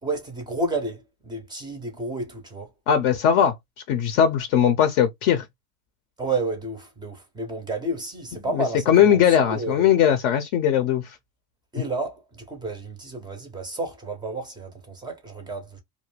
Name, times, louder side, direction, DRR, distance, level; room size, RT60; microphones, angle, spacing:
voice 1, 0.0-2.7 6.2-9.9 11.7-15.8, right 2 dB, 10° right, 0.4 m, -31 dB
voice 2, 2.9-3.6 3.9-5.5 8.9-11.2, left 9 dB, 45° left, 0.5 m, -19 dB
2.4 x 2.2 x 3.0 m
supercardioid pair, 125°, 45 cm